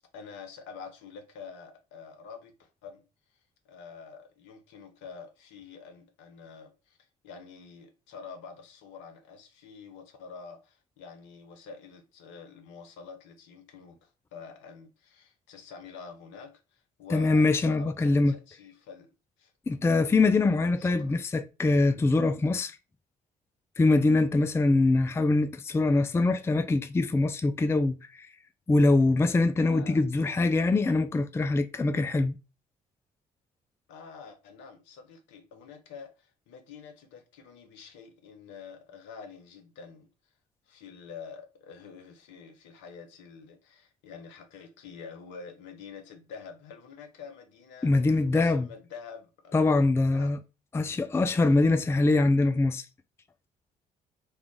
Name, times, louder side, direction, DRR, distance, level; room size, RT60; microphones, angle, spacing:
voice 1, 0.1-3.0 3.6-7.0 7.2-19.1 19.4-19.5 19.9-20.0 20.8-21.2 29.6-30.0 33.9-40.1 40.7-48.1 48.3-49.6 50.0-50.4, left 5 dB, 70° left, 0.8 m, -47 dB
voice 2, 17.1-18.3 19.7-22.8 23.8-28.3 28.7-32.4 47.8-48.7 49.5-50.4 50.7-52.9, left 2 dB, 15° left, 0.4 m, -23 dB
3.2 x 2.3 x 3.6 m
hypercardioid pair, 45°, 20 cm